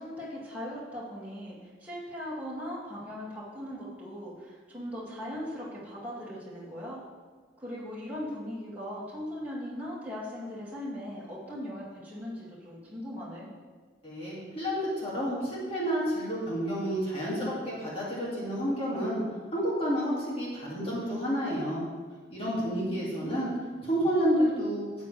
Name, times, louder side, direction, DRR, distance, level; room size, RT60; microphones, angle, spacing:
voice 1, 0.0-7.0 7.6-13.5 22.6-23.2, equal, 10° right, -8 dB, 2.4 m, -39 dB
voice 2, 14.0-19.2 19.5-21.8 22.3-23.5 23.8-24.9, equal, 30° left, -7 dB, 2.4 m, -30 dB
12.5 x 8.2 x 3.4 m, 1.5 s
head